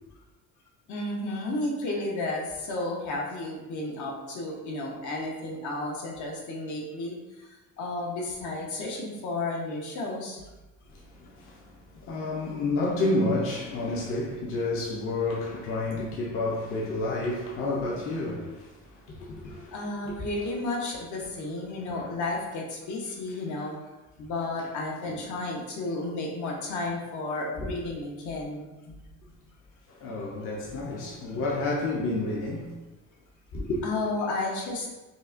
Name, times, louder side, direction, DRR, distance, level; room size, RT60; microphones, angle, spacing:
voice 1, 0.9-10.4 15.9-16.0 19.7-23.8 24.2-29.0 33.8-35.0, left 2 dB, 70° left, 0.8 m, -32 dB
voice 2, 10.9-19.8 20.0-20.1 21.8-22.2 25.0-25.3 27.6-27.7 29.9-32.8 33.5-33.8, left 2 dB, 45° left, 0.5 m, -30 dB
4.9 x 2.1 x 2.5 m
cardioid pair, 170°, 31 cm